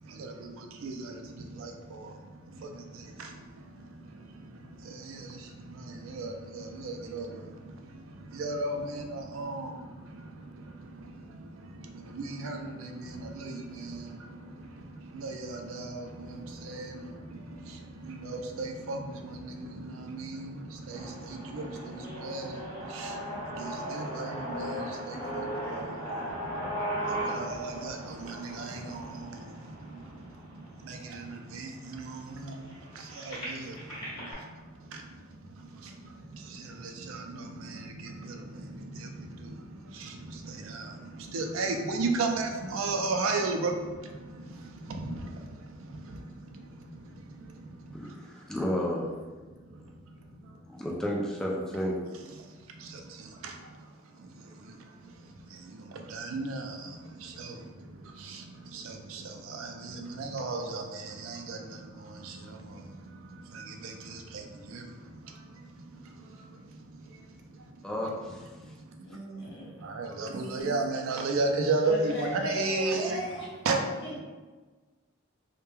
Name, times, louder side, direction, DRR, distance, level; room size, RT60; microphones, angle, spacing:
voice 1, 0.0-48.2 49.7-49.8 50.4-50.5 52.3-53.7 54.2-55.1 55.5-67.6 68.6-68.7 69.7-73.2 73.7-74.2, right 3 dB, 85° right, 0.4 m, -36 dB
sound 1, 20.9-30.9 31.5-31.6 31.9-34.3, equal, 25° left, 1.2 m, -37 dB
voice 2, 47.9-49.1 50.7-52.0 67.8-68.4, equal, 5° left, 0.3 m, -32 dB
voice 3, 69.0-69.7 71.8-73.5 73.8-74.2, left 1 dB, 60° left, 0.8 m, -36 dB
3.0 x 2.1 x 2.2 m
head